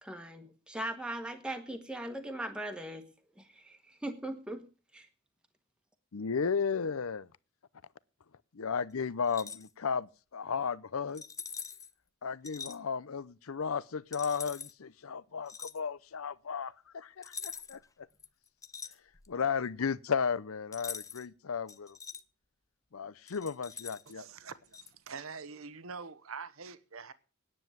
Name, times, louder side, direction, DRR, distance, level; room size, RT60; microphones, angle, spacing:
voice 1, 0.0-4.6 4.9-5.1, right 1 dB, 5° right, 1.3 m, -40 dB
voice 2, 6.1-7.3 8.5-11.2 12.2-17.3 17.7-17.8 19.3-22.0 22.9-24.2, left 6 dB, 75° left, 0.6 m, -34 dB
sound 1, 9.2-9.7 11.1-11.9 12.4-12.8 14.1-14.7 15.5-15.8 17.2-17.8 18.2-19.4 20.7-21.3 21.7-22.2 23.3-24.1 24.7-24.9, left 6 dB, 15° left, 0.6 m, -43 dB
voice 3, 24.1-27.1, right 5 dB, 70° right, 1.0 m, -45 dB
10.0 x 7.9 x 9.1 m
head